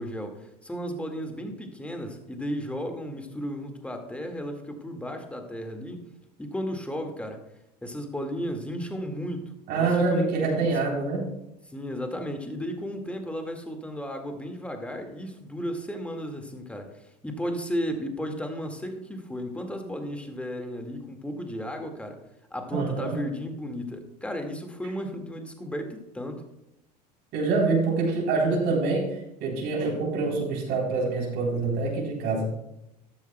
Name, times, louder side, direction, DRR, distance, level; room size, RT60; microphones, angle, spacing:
voice 1, 0.0-6.0 6.4-7.4 7.8-10.7 11.7-22.2 22.5-26.4, equal, 5° left, 4 dB, 1.9 m, -34 dB
voice 2, 9.7-11.3 22.7-23.2 27.3-32.4, right 3 dB, 55° right, -1 dB, 3.6 m, -26 dB
13.5 x 12.0 x 2.3 m, 0.84 s
hypercardioid pair, 75°, 21 cm